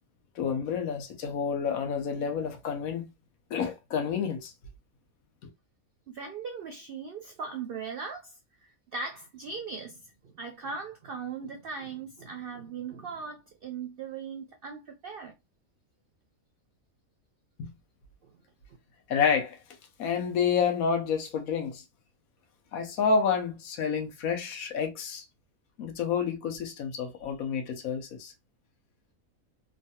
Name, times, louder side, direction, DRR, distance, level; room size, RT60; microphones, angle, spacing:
voice 1, 0.4-3.1 3.5-4.5 17.6-17.7 19.1-19.6 20.0-21.8 22.7-25.2 25.8-28.3, left 6 dB, 85° left, 1.1 m, -29 dB
voice 2, 6.1-15.4 18.2-18.3, right 5 dB, 70° right, 0.5 m, -39 dB
3.1 x 2.2 x 2.7 m
omnidirectional pair, 1.5 m